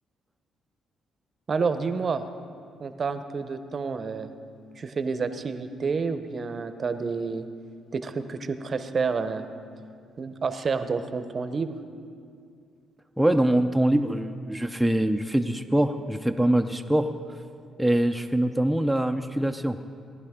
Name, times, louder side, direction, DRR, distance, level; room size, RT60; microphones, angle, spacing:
voice 1, 1.5-2.2 2.8-4.3 4.8-7.5 7.9-9.5 10.2-11.8, right 5 dB, 40° right, 10 dB, 0.7 m, -29 dB
voice 2, 13.2-17.1 17.8-19.8, right 1 dB, ahead, 4 dB, 0.5 m, -23 dB
18.0 x 11.0 x 3.6 m, 2.3 s
cardioid pair, 90°, 0 cm